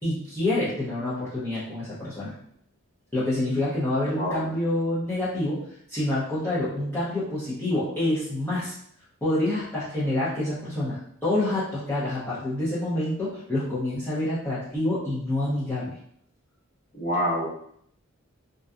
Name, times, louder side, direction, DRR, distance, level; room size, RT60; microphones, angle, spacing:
voice 1, 0.0-2.3 3.1-5.6 5.9-8.8 9.2-15.9, left 1 dB, 10° left, -12 dB, 0.6 m, -27 dB
voice 2, 4.1-4.4 16.9-17.5, equal, 40° left, -8 dB, 1.2 m, -26 dB
2.6 x 2.2 x 2.3 m, 0.68 s
head